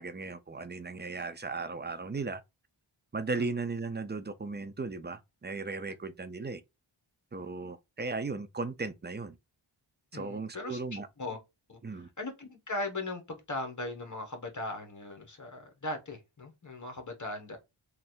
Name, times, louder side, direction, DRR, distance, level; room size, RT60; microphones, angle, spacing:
voice 1, 0.0-2.4 3.1-6.6 7.3-9.4 10.1-11.1 11.8-12.1, right 3 dB, 20° right, 0.4 m, -36 dB
voice 2, 10.1-11.4 11.7-17.6, left 2 dB, 35° left, 1.2 m, -39 dB
3.2 x 2.6 x 4.3 m
wide cardioid pair, 70°, 50 cm